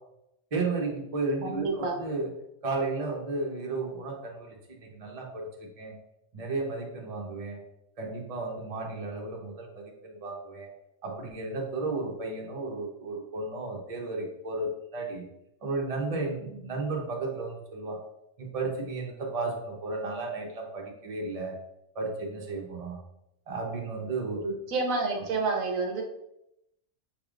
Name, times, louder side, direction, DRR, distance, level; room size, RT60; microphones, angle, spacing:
voice 1, 0.5-2.3 2.6-4.6 4.8-5.9 6.3-7.6 8.0-10.7 11.0-15.3 15.6-18.0 18.4-21.6 21.9-23.0 23.5-24.4, right 3 dB, 35° right, -1 dB, 0.8 m, -33 dB
voice 2, 1.4-2.0 24.4-26.0, right 3 dB, 80° right, 3 dB, 1.2 m, -29 dB
6.2 x 3.3 x 2.4 m, 0.83 s
omnidirectional pair, 1.4 m